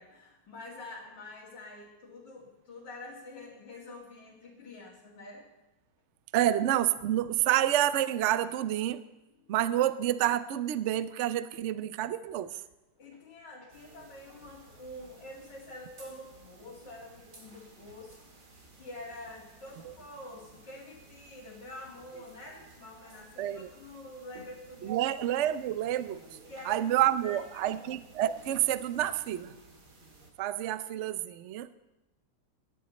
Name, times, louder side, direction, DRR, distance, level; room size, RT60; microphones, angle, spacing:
voice 1, 0.0-5.5 9.4-9.5 13.0-18.3 18.7-25.1 26.5-26.9 27.2-27.9, left 2 dB, 75° left, -5 dB, 2.8 m, -47 dB
voice 2, 6.3-9.0 9.5-12.6 19.8-19.9 23.4-23.7 24.8-26.2 26.6-29.5 30.4-31.7, right 12 dB, 80° right, 13 dB, 0.6 m, -28 dB
sound 1, 13.7-30.3, right 3 dB, 60° right, 2.7 m, -55 dB
17.5 x 12.0 x 4.2 m, 1.0 s
omnidirectional pair, 2.0 m